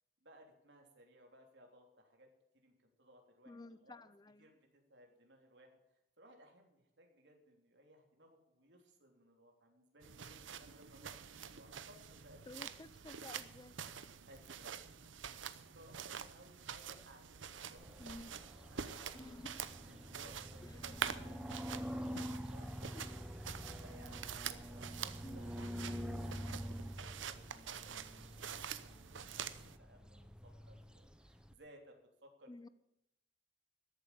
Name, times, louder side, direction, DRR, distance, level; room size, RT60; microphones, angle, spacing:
voice 1, 0.2-2.3 2.5-4.0 4.4-12.6 14.2-25.5 25.8-28.9 29.8-32.7, equal, 65° right, 2 dB, 3.2 m, -62 dB
voice 2, 3.5-4.5 12.5-13.8 18.0-18.3 19.1-19.6 20.6-20.9 22.9-23.2 25.2-25.4 32.5-32.7, left 2 dB, 20° left, 15 dB, 0.5 m, -52 dB
sound 1, 10.0-29.8, right 8 dB, 90° right, 0.9 m, -47 dB
sound 2, 17.8-31.5, equal, 5° right, 0.8 m, -47 dB
13.5 x 8.1 x 8.7 m, 0.85 s
head